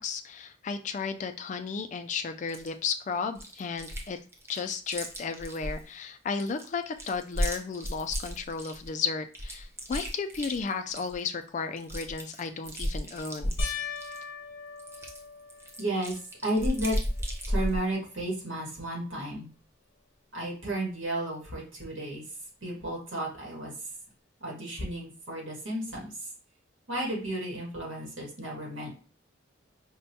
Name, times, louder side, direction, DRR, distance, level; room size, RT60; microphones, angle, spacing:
voice 1, 0.0-4.2 4.5-13.6, left 5 dB, 40° left, 7 dB, 0.3 m, -34 dB
Chewing mastication, 2.5-2.7 3.4-4.1 4.3-5.8 6.3-8.9 9.3-11.2 11.5-11.6 11.8-14.2 14.8-17.8, equal, 15° right, 0.6 m, -34 dB
sound 1, 13.6-16.2 16.8-17.4 17.7-17.8 21.0-21.1, left 3 dB, 80° left, 0.8 m, -38 dB
voice 2, 15.8-16.1 16.4-17.0 17.5-19.5 20.3-22.2 22.6-23.7 24.4-26.1 26.9-28.9, right 1 dB, 85° right, -3 dB, 1.7 m, -33 dB
5.3 x 2.1 x 2.7 m, 0.37 s
head